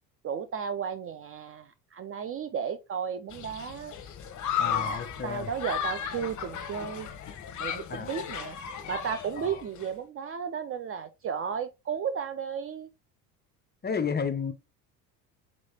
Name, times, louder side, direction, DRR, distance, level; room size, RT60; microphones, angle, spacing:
voice 1, 0.2-3.9 4.6-5.0 5.2-7.1 7.6-8.6 8.9-12.9, right 7 dB, 30° right, 0.5 m, -34 dB
Human group actions, 3.3-9.9, left 8 dB, 35° left, 1.0 m, -35 dB
voice 2, 4.6-5.5 7.9-8.2 9.4-9.6 13.8-14.5, left 6 dB, 20° left, 0.6 m, -32 dB
4.1 x 3.2 x 4.0 m
hypercardioid pair, 75°, 49 cm